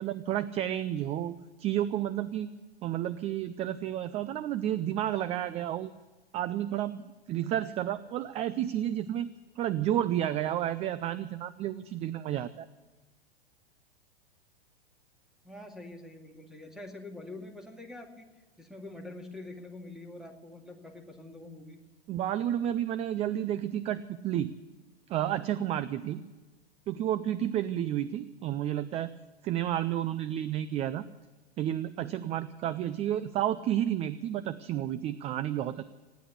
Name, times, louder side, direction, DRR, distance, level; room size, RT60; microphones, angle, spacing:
voice 1, 0.0-2.5 2.8-5.9 6.3-12.7 22.1-24.5 25.1-26.2 26.9-29.1 29.4-31.0 31.6-35.8, right 11 dB, 20° right, 15 dB, 0.4 m, -31 dB
voice 2, 15.4-18.3 18.6-21.8, left 2 dB, ahead, 3 dB, 2.3 m, -45 dB
16.5 x 10.5 x 8.3 m, 1.3 s
hypercardioid pair, 115°, 30 cm